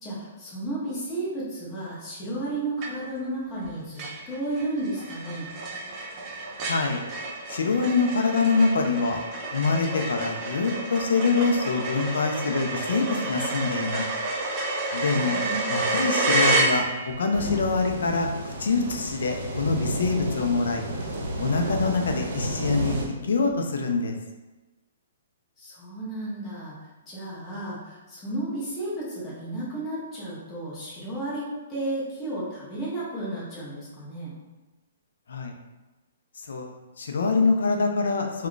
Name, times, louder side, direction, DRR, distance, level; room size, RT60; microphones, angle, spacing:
voice 1, 0.0-5.5 15.0-15.7 25.6-26.7 27.1-34.3, right 1 dB, 15° left, -8 dB, 0.8 m, -33 dB
sound 1, 2.8-3.3 3.6-3.7 4.0-17.3, right 2 dB, 25° right, 0.4 m, -29 dB
voice 2, 6.7-7.0 7.5-9.2 9.5-14.1 14.9-15.4 15.7-20.8 21.4-24.2 35.3-35.5 36.4-38.5, left 4 dB, 80° left, 3 dB, 0.5 m, -25 dB
sound 2, 17.3-23.1, right 1 dB, 70° right, 0.7 m, -31 dB
2.3 x 2.2 x 3.7 m, 1.1 s
hypercardioid pair, 165°, 0 cm